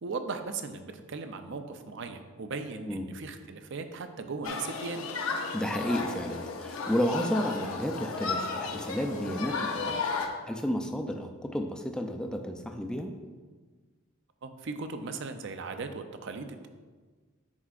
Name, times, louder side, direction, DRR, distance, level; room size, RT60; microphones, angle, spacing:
voice 1, 0.0-5.1 14.4-16.7, right 4 dB, 60° right, 7 dB, 0.5 m, -38 dB
Human group actions, 4.4-10.3, left 4 dB, 80° left, 0.7 m, -34 dB
voice 2, 5.5-10.1 10.5-13.1, equal, 5° left, 4 dB, 0.3 m, -32 dB
9.6 x 4.8 x 2.4 m, 1.4 s
head